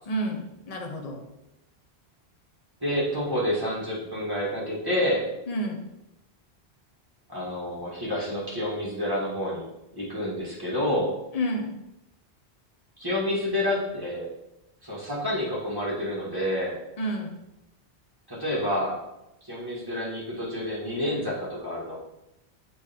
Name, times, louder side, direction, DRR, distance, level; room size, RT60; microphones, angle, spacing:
voice 1, 0.1-1.3 5.5-5.8 11.3-11.7 17.0-17.3, equal, 40° left, 2 dB, 0.9 m, -30 dB
voice 2, 2.8-5.3 7.3-9.7 9.9-11.2 13.0-14.3 14.8-16.8 18.3-19.0 19.4-22.0, left 1 dB, 20° right, -6 dB, 1.8 m, -28 dB
6.7 x 4.3 x 3.6 m, 0.90 s
omnidirectional pair, 1.1 m